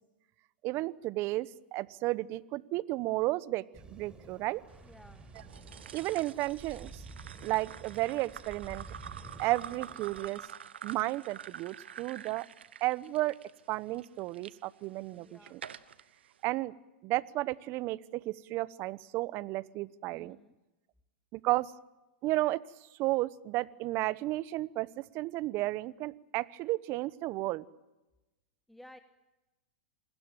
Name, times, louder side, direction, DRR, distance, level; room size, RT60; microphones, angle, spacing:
voice 1, 0.6-3.6 3.9-4.6 5.9-7.0 7.4-8.8 9.4-10.4 10.8-12.5 12.8-13.3 13.7-15.6 16.4-16.7 17.0-20.4 21.3-21.7 22.2-22.6 23.0-27.6, right 18 dB, 45° right, 20 dB, 1.0 m, -33 dB
sound 1, 3.7-10.3, right 3 dB, 15° right, 5.0 m, -50 dB
voice 2, 4.8-5.3 15.1-15.6 20.1-20.6 28.7-29.0, left 1 dB, ahead, 9 dB, 1.4 m, -55 dB
sound 2, 5.4-14.5 15.1-16.0, right 8 dB, 85° right, 1.2 m, -47 dB
27.0 x 20.0 x 9.1 m, 1.0 s
hypercardioid pair, 110°, 6 cm